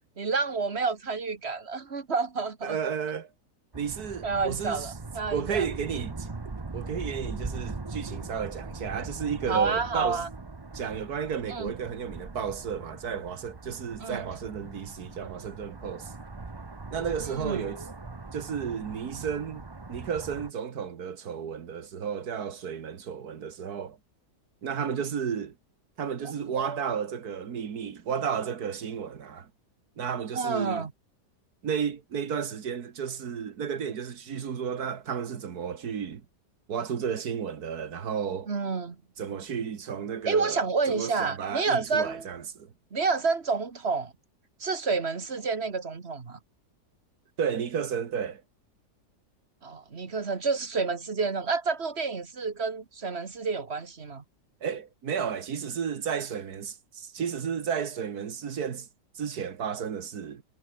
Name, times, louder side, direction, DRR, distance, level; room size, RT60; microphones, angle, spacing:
voice 1, 0.2-2.8 4.2-5.7 9.5-10.3 11.5-11.7 14.0-14.2 17.2-17.6 26.2-26.8 30.3-30.9 38.5-39.0 40.3-42.3 42.9-44.1 44.6-46.4 49.6-54.2, right 4 dB, 40° right, 1.8 m, -29 dB
voice 2, 2.6-3.3 3.7-4.9 5.3-6.3 6.7-10.2 10.7-16.1 16.9-17.8 18.3-19.6 19.9-24.0 24.6-25.5 26.0-29.5 30.0-30.9 31.6-36.3 36.7-38.5 39.2-42.7 47.4-48.4 54.6-58.9 59.2-60.4, right 7 dB, 65° right, 2.0 m, -33 dB
sound 1, 3.7-20.5, right 3 dB, 20° right, 0.7 m, -41 dB
omnidirectional pair, 1.8 m